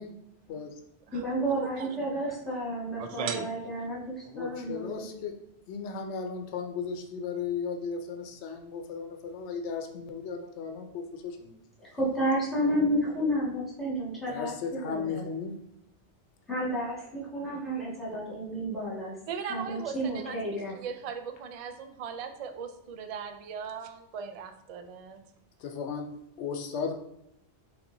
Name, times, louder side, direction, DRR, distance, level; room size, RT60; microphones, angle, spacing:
voice 1, 0.5-0.8 4.2-5.4 5.7-11.6 14.3-15.5 25.6-26.1 26.4-26.9, left 5 dB, 80° left, 4 dB, 0.9 m, -35 dB
voice 2, 1.1-5.0 11.8-15.3 16.5-19.1 19.4-20.8, right 1 dB, ahead, -7 dB, 1.6 m, -31 dB
voice 3, 3.0-3.5 19.3-25.2, right 6 dB, 55° right, 7 dB, 0.4 m, -38 dB
5.8 x 3.3 x 2.7 m, 0.79 s
omnidirectional pair, 1.2 m